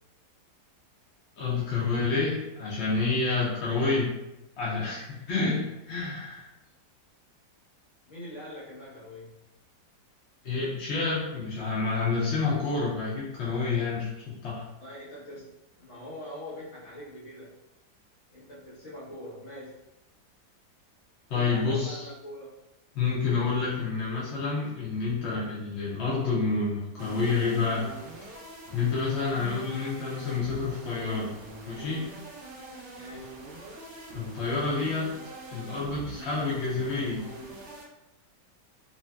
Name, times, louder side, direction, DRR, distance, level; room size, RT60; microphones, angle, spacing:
voice 1, 1.4-4.1 4.6-6.5 10.4-14.1 14.4-14.6 21.3-22.1 22.9-27.9 28.7-31.3 31.7-32.0 34.1-35.1 35.5-37.2, left 4 dB, 60° left, -6 dB, 0.7 m, -28 dB
voice 2, 8.1-9.4 14.8-17.6 18.3-19.8 21.3-22.6 32.9-33.4, left 1 dB, 45° left, -7 dB, 1.3 m, -43 dB
sound 1, 27.0-37.8, right 2 dB, 70° right, 0.6 m, -44 dB
2.9 x 2.7 x 2.2 m, 0.92 s
omnidirectional pair, 1.9 m